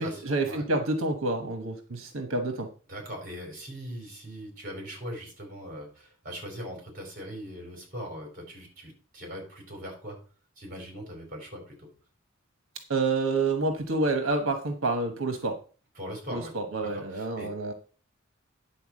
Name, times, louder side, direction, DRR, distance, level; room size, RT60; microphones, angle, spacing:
voice 1, 0.0-2.7 12.9-15.6 16.3-17.7, right 2 dB, 80° right, 6 dB, 1.1 m, -28 dB
voice 2, 2.9-10.2 10.6-11.9 16.0-16.5 16.9-17.5, equal, 40° right, 2 dB, 4.3 m, -40 dB
10.0 x 4.3 x 7.4 m, 0.38 s
head